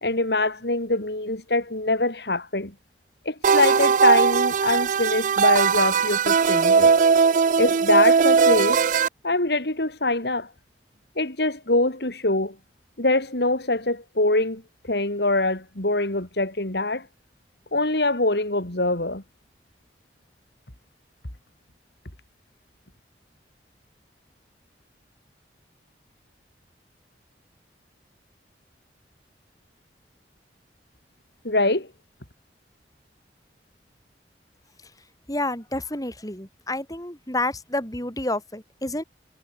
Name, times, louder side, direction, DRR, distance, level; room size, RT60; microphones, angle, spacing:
voice 1, 0.0-2.7 3.3-6.9 7.6-8.8 9.2-10.5 11.2-12.5 13.0-14.6 14.9-17.1 17.7-19.2 31.4-31.9, left 2 dB, 65° left, 3.5 m, -24 dB
sound 1, 3.4-9.1, right 5 dB, 45° right, 0.4 m, -19 dB
voice 2, 35.3-39.0, left 2 dB, 20° left, 6.5 m, -29 dB
head